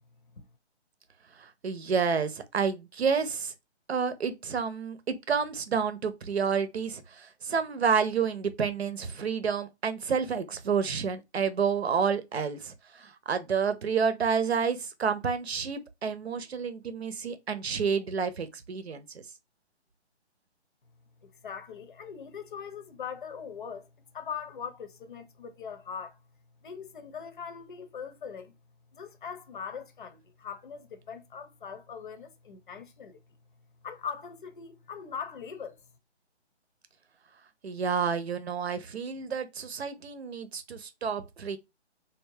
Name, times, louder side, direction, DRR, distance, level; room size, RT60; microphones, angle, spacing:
voice 1, 1.4-3.5 3.9-19.2 37.6-41.6, right 6 dB, 65° right, 0.8 m, -29 dB
voice 2, 21.2-23.9 24.1-26.2 26.6-28.5 28.9-33.2 33.8-35.8, left 7 dB, 45° left, 0.7 m, -41 dB
3.5 x 2.7 x 2.6 m
figure-of-eight pair, 150°, 34 cm